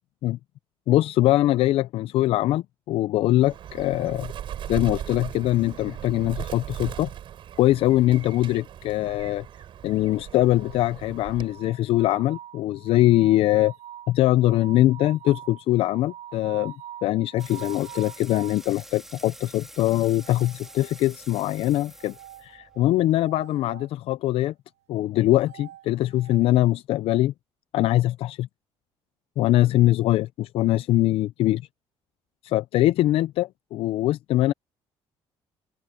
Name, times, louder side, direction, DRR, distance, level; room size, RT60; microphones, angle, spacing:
voice 1, 0.9-4.3 4.7-7.1 7.6-9.5 9.8-13.7 14.1-16.7 17.0-22.1 22.4-24.5 24.9-27.3 27.7-28.5 29.4-31.6 32.4-34.5, left 15 dB, 60° left, 0.4 m, -22 dB
Bird, 3.4-11.7, right 10 dB, 50° right, 7.4 m, -38 dB
sound 1, 10.6-18.7 19.9-21.2 21.9-23.9 25.1-26.5, right 11 dB, 80° right, 1.6 m, -45 dB
sound 2, 17.4-23.1, right 1 dB, 5° right, 2.3 m, -47 dB
open air
cardioid pair, 150°, 11 cm